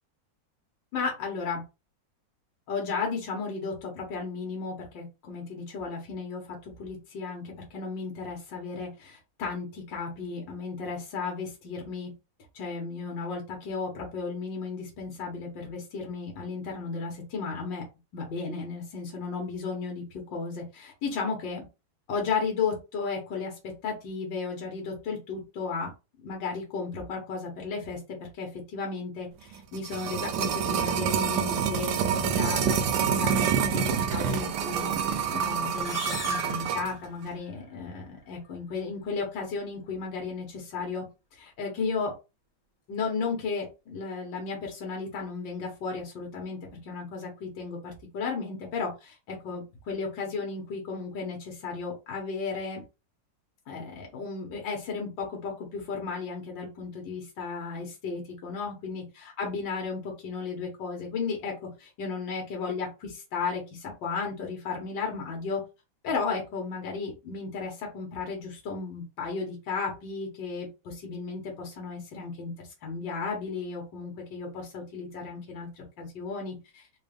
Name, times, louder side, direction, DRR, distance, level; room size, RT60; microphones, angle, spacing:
voice 1, 0.9-1.6 2.7-12.1 12.5-17.8 18.1-20.0 20.3-21.6 22.1-25.9 26.2-28.0 28.4-29.3 29.7-34.9 35.3-41.0 41.3-42.1 42.9-46.6 46.9-52.8 53.7-61.5 61.8-65.6 66.0-72.5 72.8-76.8, left 4 dB, 70° left, 0 dB, 2.0 m, -34 dB
sound 1, 29.5-36.9 37.2-37.3, right 7 dB, 70° right, 1.2 m, -27 dB
sound 2, 35.7-37.5, left 2 dB, 25° left, 0.8 m, -39 dB
4.4 x 2.4 x 3.4 m, 0.27 s
omnidirectional pair, 2.1 m